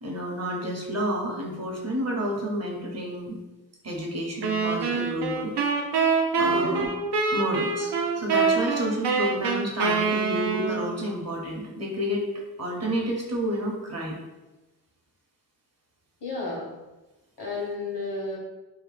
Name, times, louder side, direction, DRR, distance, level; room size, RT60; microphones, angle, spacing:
voice 1, 0.0-3.4 3.8-5.5 6.4-6.9 7.3-12.2 12.6-14.2, equal, 40° right, -1 dB, 0.7 m, -30 dB
sound 1, 4.4-11.0, right 5 dB, 85° right, 0.5 m, -25 dB
voice 2, 6.5-6.9 16.2-16.7 17.4-18.4, left 2 dB, 85° left, -4 dB, 1.0 m, -32 dB
2.8 x 2.1 x 3.2 m, 1.1 s
wide cardioid pair, 65°, 40 cm